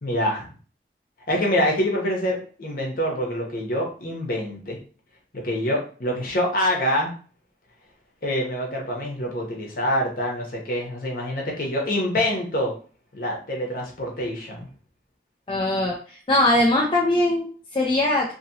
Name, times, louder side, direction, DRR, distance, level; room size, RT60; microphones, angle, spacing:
voice 1, 0.0-0.5 1.3-4.8 5.4-7.1 8.2-12.7 13.1-14.7, equal, 50° left, 0 dB, 0.9 m, -25 dB
voice 2, 15.5-16.0 16.3-18.3, left 1 dB, 30° left, -2 dB, 0.4 m, -21 dB
2.8 x 2.8 x 2.7 m, 0.41 s
head